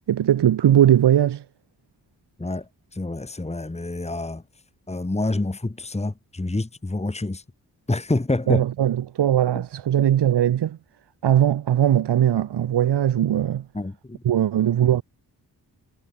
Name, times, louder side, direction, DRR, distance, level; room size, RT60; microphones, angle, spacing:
voice 1, 0.1-1.4 8.5-10.8 11.2-13.7 14.2-15.0, right 11 dB, 75° right, 1.1 m, -19 dB
voice 2, 2.4-4.4 4.9-7.4 7.9-8.6 13.7-14.2, left 2 dB, 15° left, 2.0 m, -27 dB
cardioid pair, 70°, 41 cm